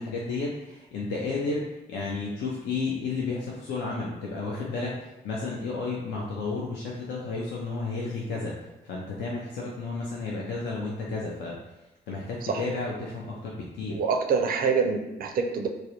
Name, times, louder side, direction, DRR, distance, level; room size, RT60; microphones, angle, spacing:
voice 1, 0.0-1.6 1.9-8.6 8.8-11.6 12.1-14.0, left 3 dB, 70° left, -3 dB, 0.4 m, -32 dB
voice 2, 13.9-15.7, right 5 dB, 50° right, 4 dB, 0.4 m, -26 dB
2.3 x 2.0 x 2.8 m, 0.98 s
supercardioid pair, 55°, 19 cm